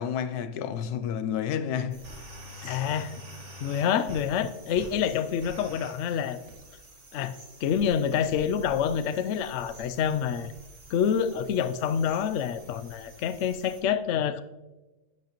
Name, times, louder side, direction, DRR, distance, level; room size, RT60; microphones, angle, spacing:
voice 1, 0.0-2.0, left 8 dB, 85° left, 1.2 m, -30 dB
sound 1, 1.9-13.8, equal, 50° right, 2.0 m, -48 dB
voice 2, 2.6-3.2 3.6-6.4 7.1-7.4 7.6-10.5 10.9-14.4, left 8 dB, 65° left, 0.7 m, -27 dB
11.0 x 9.1 x 3.0 m
omnidirectional pair, 1.6 m